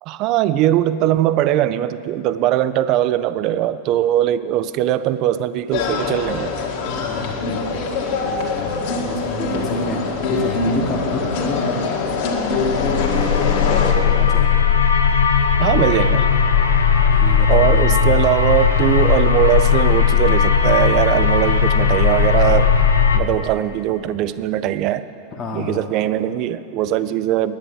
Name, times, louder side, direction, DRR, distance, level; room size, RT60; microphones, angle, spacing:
voice 1, 0.0-6.5 15.6-16.3 17.5-22.7 23.1-25.1 25.5-27.6, right 12 dB, 40° right, 14 dB, 0.5 m, -20 dB
sound 1, 5.7-13.9, left 3 dB, 50° left, 1.9 m, -23 dB
voice 2, 7.0-12.0 12.6-14.7 17.1-18.2 25.3-25.8, left 3 dB, 25° left, -1 dB, 1.2 m, -30 dB
sound 2, 12.5-23.2, left 7 dB, 70° left, 0.9 m, -17 dB
10.5 x 9.7 x 9.0 m, 2.6 s
figure-of-eight pair, 90°, 0 cm